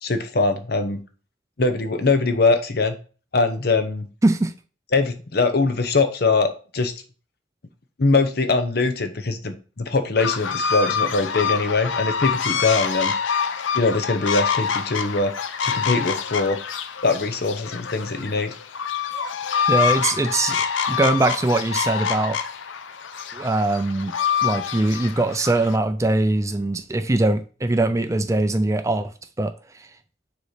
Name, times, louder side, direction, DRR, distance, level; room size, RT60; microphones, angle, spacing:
voice 1, 0.0-1.0 1.6-2.9 3.3-4.1 4.9-6.9 8.0-13.1 13.7-15.3 15.6-16.6 17.0-18.5, left 3 dB, 55° left, 0.8 m, -22 dB
voice 2, 4.2-4.5 19.7-22.4 23.3-24.1 24.4-29.1 29.4-29.5 29.8-29.9, right 2 dB, 15° right, 0.4 m, -22 dB
sound 1, 10.2-25.8, left 7 dB, 90° left, 0.6 m, -26 dB
6.7 x 3.1 x 4.9 m
head